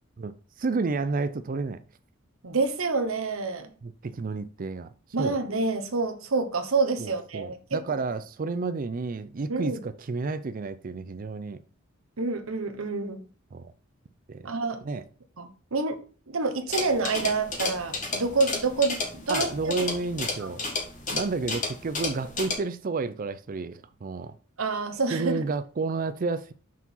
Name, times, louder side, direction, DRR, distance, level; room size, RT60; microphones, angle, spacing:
voice 1, 0.2-1.8 3.8-4.9 5.2-5.4 7.0-11.6 13.5-13.7 14.3-14.5 14.8-15.0 19.3-20.6 21.1-24.4 25.1-26.5, right 4 dB, 40° right, 0.4 m, -31 dB
voice 2, 2.4-3.7 5.1-7.6 9.5-9.8 12.2-13.3 14.4-14.8 15.4-16.0 16.3-19.8 20.4-20.5 24.6-25.4, right 3 dB, 75° right, 1.1 m, -27 dB
sound 1, 16.7-22.6, left 3 dB, 35° left, 1.6 m, -32 dB
6.1 x 4.6 x 5.5 m
head